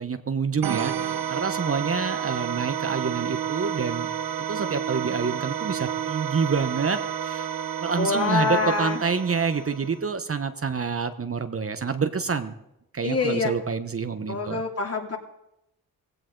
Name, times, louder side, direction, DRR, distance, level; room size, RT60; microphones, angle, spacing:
voice 1, 0.0-4.1 4.5-7.5 7.8-12.5 12.9-14.6, right 5 dB, 35° right, 9 dB, 1.1 m, -27 dB
sound 1, 0.6-10.1, right 9 dB, 65° right, 0.8 m, -30 dB
voice 2, 8.0-9.0 13.0-13.5 14.3-15.2, left 4 dB, 40° left, 2 dB, 2.9 m, -25 dB
16.5 x 16.0 x 3.9 m, 0.84 s
supercardioid pair, 55°, 38 cm